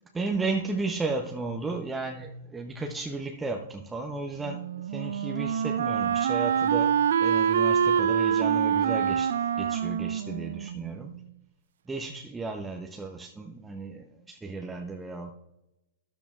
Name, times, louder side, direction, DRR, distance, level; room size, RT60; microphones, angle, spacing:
voice 1, 0.1-9.3 9.6-11.1 11.9-15.3, right 3 dB, 10° right, 3 dB, 0.8 m, -34 dB
Wind instrument woodwind instrument, 4.4-11.3, right 8 dB, 60° right, 0.4 m, -26 dB
13.0 x 10.5 x 2.4 m, 0.93 s
figure-of-eight pair, 105°, 0 cm